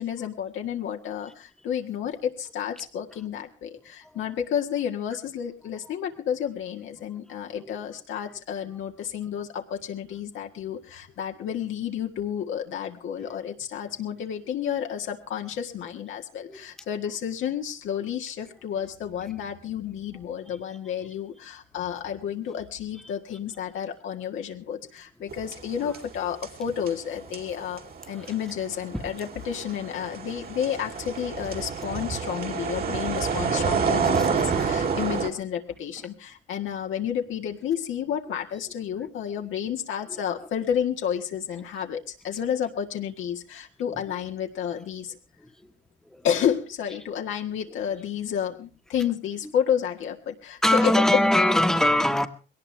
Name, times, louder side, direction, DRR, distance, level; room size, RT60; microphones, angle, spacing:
voice 1, 0.0-27.8 28.1-45.1 46.2-51.2, left 9 dB, 80° left, 1.8 m, -31 dB
sound 1, 25.3-26.2 26.4-35.3, right 5 dB, 50° right, 2.5 m, -28 dB
voice 2, 34.0-34.8 46.1-46.2 50.6-52.3, left 1 dB, ahead, 1.4 m, -23 dB
21.0 x 18.0 x 3.4 m
cardioid pair, 90°, 20 cm